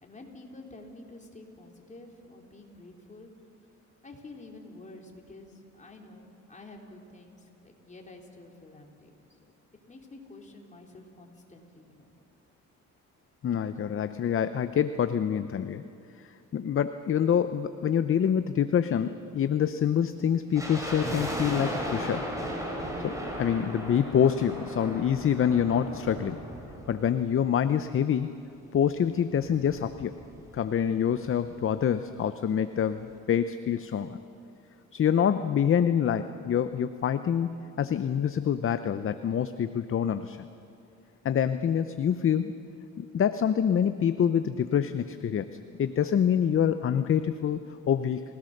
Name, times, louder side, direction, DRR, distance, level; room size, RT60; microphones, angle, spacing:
voice 1, 0.0-3.3 4.0-9.5 9.9-12.1, left 2 dB, 25° left, 1 dB, 3.6 m, -49 dB
voice 2, 13.4-15.9 16.5-22.2 23.0-26.4 26.9-28.3 28.7-30.1 30.5-34.2 34.9-40.4 41.2-42.5 43.0-48.2, left 8 dB, 45° left, 11 dB, 0.7 m, -26 dB
sound 1, 20.5-27.8 28.1-28.2 28.9-30.7 30.9-31.0 31.3-31.6 32.0-32.1, equal, 10° right, 5.6 m, -36 dB
29.0 x 17.5 x 6.6 m, 2.5 s
cardioid pair, 90°, 30 cm